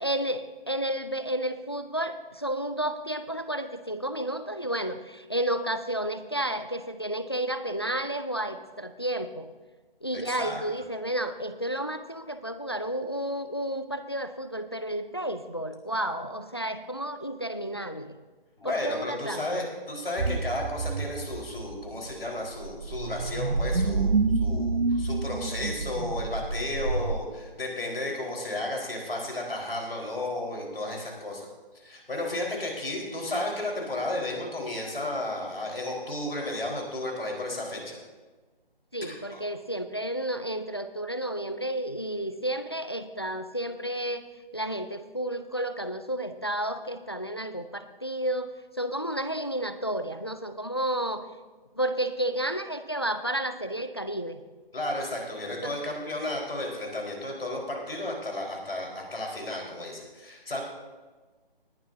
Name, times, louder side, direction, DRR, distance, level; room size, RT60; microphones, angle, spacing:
voice 1, 0.0-9.5 10.0-18.2 18.6-19.7 38.9-44.2 44.5-48.5 48.8-51.2 51.8-54.4 55.6-55.8, right 1 dB, 25° left, 10 dB, 0.4 m, -31 dB
voice 2, 10.1-10.6 18.6-31.5 31.7-38.0 39.0-39.4 54.7-60.6, left 1 dB, 75° left, 0 dB, 4.4 m, -33 dB
sound 1, 20.2-27.2, right 3 dB, 75° right, 0.9 m, -28 dB
20.0 x 11.5 x 2.7 m, 1.3 s
figure-of-eight pair, 155°, 30 cm